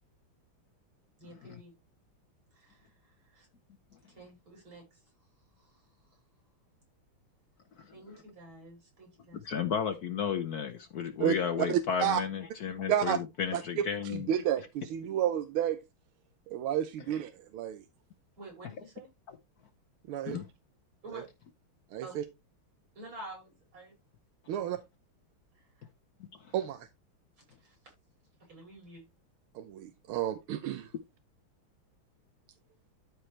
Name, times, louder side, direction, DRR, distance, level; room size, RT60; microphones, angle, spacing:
voice 1, 1.2-1.7 2.5-3.5 4.1-5.0 5.6-6.2 7.9-9.8 18.4-19.1 21.0-21.3 22.0-22.2 22.9-23.9 24.5-24.7 25.5-25.9 27.6-27.8 28.4-29.0, right 2 dB, 65° right, 6.6 m, -50 dB
voice 2, 9.4-14.3 19.3-19.4 20.3-20.4 26.4-26.5, left 7 dB, 60° left, 1.1 m, -33 dB
voice 3, 11.2-12.2 12.9-13.2 13.5-13.6 14.1-15.8 16.5-17.8 20.1-20.4 21.9-22.2 24.5-24.8 26.5-26.9 29.5-30.9, right 10 dB, 90° right, 1.7 m, -31 dB
13.0 x 4.6 x 3.2 m
omnidirectional pair, 2.3 m